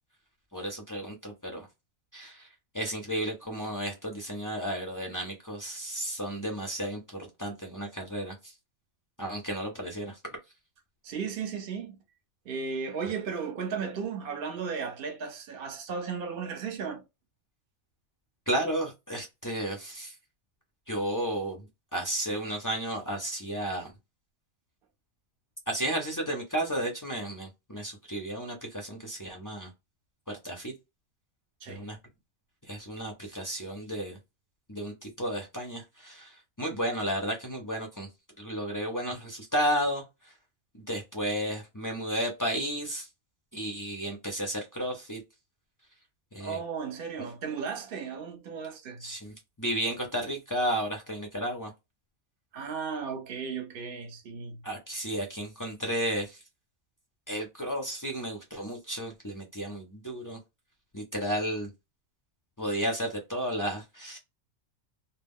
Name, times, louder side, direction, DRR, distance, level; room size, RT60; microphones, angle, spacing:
voice 1, 0.5-1.7 2.1-2.5 2.7-8.5 9.2-10.2 18.5-20.1 20.9-21.6 21.9-23.9 25.7-29.7 30.3-30.7 31.7-32.0 32.7-34.2 34.7-38.1 38.4-40.3 40.9-43.1 43.5-45.2 46.3-46.6 49.0-51.7 54.6-56.4 57.3-60.4 60.9-61.7 62.6-64.2, right 1 dB, 35° left, 0.3 m, -33 dB
voice 2, 11.0-12.0 12.4-17.0 31.6-31.8 46.4-49.1 52.5-54.6, right 6 dB, 50° right, 0.8 m, -35 dB
2.2 x 2.1 x 3.5 m
omnidirectional pair, 1.4 m